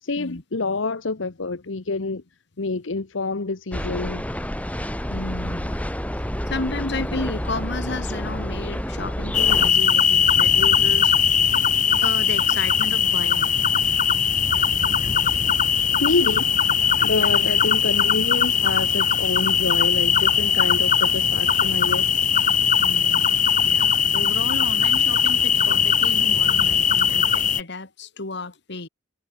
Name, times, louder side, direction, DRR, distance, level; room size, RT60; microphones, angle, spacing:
voice 1, 0.0-2.2 2.6-4.2 14.6-15.2 16.0-16.6 17.0-22.3, left 3 dB, 85° left, 1.0 m, -27 dB
sound 1, 3.7-9.7, equal, 10° left, 4.1 m, -29 dB
voice 2, 5.1-5.8 6.5-11.1 11.4-11.6 12.0-13.5 22.8-28.9, left 3 dB, 65° left, 2.3 m, -33 dB
sound 2, 9.3-27.6, left 8 dB, 45° left, 1.3 m, -20 dB
head